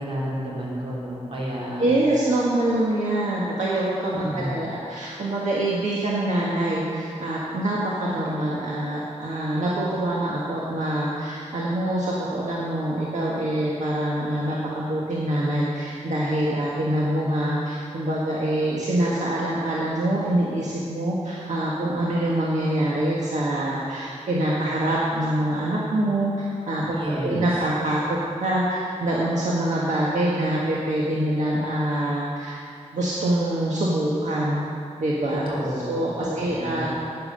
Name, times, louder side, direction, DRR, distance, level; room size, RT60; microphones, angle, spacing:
voice 1, 0.0-1.9 4.1-4.5 26.9-27.5 35.3-36.9, equal, 50° right, -5 dB, 3.5 m, -30 dB
voice 2, 1.8-27.0 27.2-32.6 32.9-34.6 35.0-35.4 35.9-36.9, right 1 dB, 75° right, -5 dB, 1.6 m, -25 dB
10.5 x 9.6 x 6.7 m, 2.4 s
wide cardioid pair, 140°, 12 cm